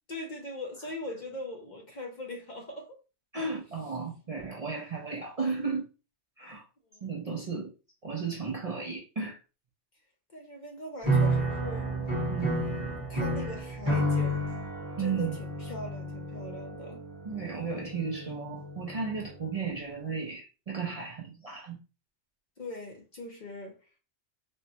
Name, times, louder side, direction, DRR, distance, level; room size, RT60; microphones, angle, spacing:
voice 1, 0.1-3.0 3.6-3.7 6.8-7.2 10.3-11.9 12.5-14.6 15.0-17.0 22.6-23.9, left 1 dB, 50° left, 0.7 m, -41 dB
voice 2, 3.3-5.9 6.4-6.7 7.0-7.7 8.0-9.4 12.3-12.6 15.0-15.4 17.2-21.8, right 5 dB, 45° right, 0.5 m, -34 dB
sound 1, 11.0-19.4, right 1 dB, 20° right, 1.1 m, -31 dB
4.3 x 2.1 x 2.7 m
omnidirectional pair, 1.2 m